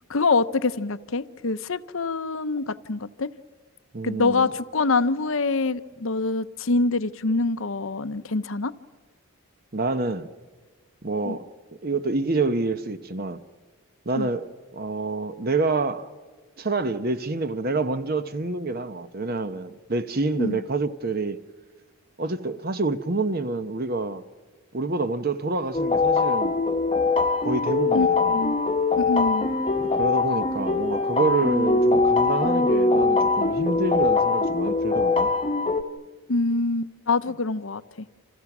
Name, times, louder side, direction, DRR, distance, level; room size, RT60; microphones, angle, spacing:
voice 1, 0.1-3.3 4.0-8.7 11.2-11.4 14.2-14.3 20.4-20.6 27.9-28.6 28.9-29.5 36.3-38.1, left 3 dB, 60° left, 0.8 m, -25 dB
voice 2, 3.9-4.5 9.7-10.3 11.0-11.5 11.8-13.4 14.1-16.1 16.6-21.4 22.2-24.2 24.7-26.6 27.4-28.4 29.8-35.3, right 3 dB, 40° right, 0.9 m, -27 dB
sound 1, 25.7-35.8, left 3 dB, 25° left, 1.1 m, -22 dB
29.5 x 28.0 x 6.1 m
head